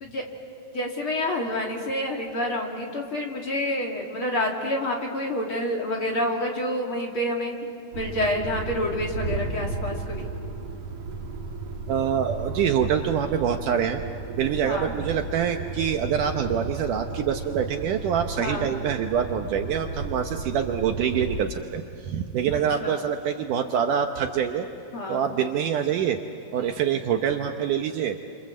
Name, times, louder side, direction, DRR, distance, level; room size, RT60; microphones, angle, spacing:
voice 1, 0.7-7.6 7.9-10.3 14.6-14.9 18.4-18.7 22.8-23.0 24.9-25.3, left 1 dB, 40° left, 0 dB, 2.4 m, -28 dB
sound 1, 7.9-21.4, right 3 dB, 50° right, 3.1 m, -34 dB
voice 2, 11.9-14.0 14.4-24.7 25.1-26.2 26.5-28.2, right 8 dB, 70° right, 5 dB, 2.1 m, -25 dB
29.0 x 27.0 x 7.6 m, 2.6 s
omnidirectional pair, 4.4 m